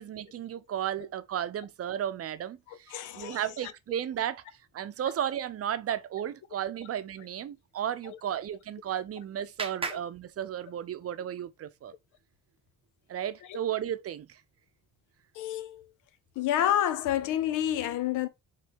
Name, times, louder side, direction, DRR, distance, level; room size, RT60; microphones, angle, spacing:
voice 1, 0.0-4.4 4.7-11.9 13.1-14.4, right 10 dB, 50° right, 0.6 m, -34 dB
voice 2, 2.7-3.4 8.0-8.2 9.9-10.0 15.3-15.9 16.4-18.3, left 11 dB, 90° left, 0.6 m, -29 dB
Clapping, 8.5-11.1, right 4 dB, 20° right, 0.8 m, -41 dB
4.3 x 3.3 x 3.4 m
cardioid pair, 90°, 30 cm